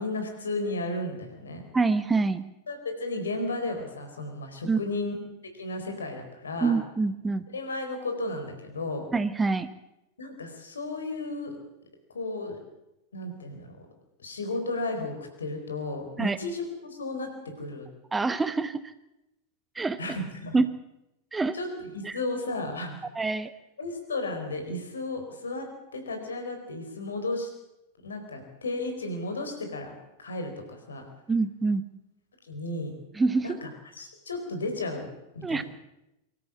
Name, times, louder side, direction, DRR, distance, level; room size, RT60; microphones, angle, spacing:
voice 1, 0.0-1.7 2.7-5.1 5.6-6.7 7.5-9.0 10.2-11.5 12.1-12.6 13.1-13.8 14.2-17.9 20.0-20.6 21.5-21.7 21.9-23.0 23.8-27.5 28.0-29.9 30.2-31.1 32.5-33.0 33.4-35.1 35.3-35.6, left 2 dB, 70° left, 5 dB, 4.5 m, -34 dB
voice 2, 1.7-2.4 4.7-4.8 6.6-7.5 9.1-9.7 16.2-16.4 18.1-18.9 19.7-20.0 20.5-20.7 21.3-21.6 22.0-22.2 23.1-23.5 31.3-31.8 33.1-33.5 35.4-35.6, right 3 dB, 10° right, 13 dB, 1.0 m, -25 dB
24.0 x 13.5 x 8.6 m, 0.91 s
figure-of-eight pair, 90°, 0 cm